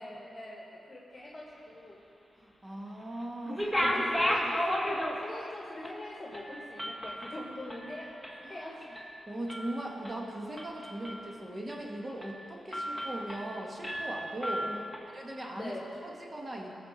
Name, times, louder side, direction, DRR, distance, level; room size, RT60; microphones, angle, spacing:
voice 1, 0.0-2.0 3.5-8.9 12.9-13.1 14.6-14.9 15.5-15.8, left 1 dB, 25° left, -4 dB, 1.8 m, -43 dB
voice 2, 2.4-4.1 8.4-8.8 9.3-14.7 15.1-15.8 16.0-16.7, right 1 dB, 30° right, -1 dB, 1.9 m, -39 dB
sound 1, 3.5-5.5 5.8-6.0 6.3-8.5 8.8-9.1 9.5-10.1 10.6-11.3 11.7-11.8 12.2-12.4 12.7-13.5 13.8-15.0, equal, ahead, 1.8 m, -33 dB
18.5 x 7.0 x 4.4 m, 2.9 s
cardioid pair, 65°, 0 cm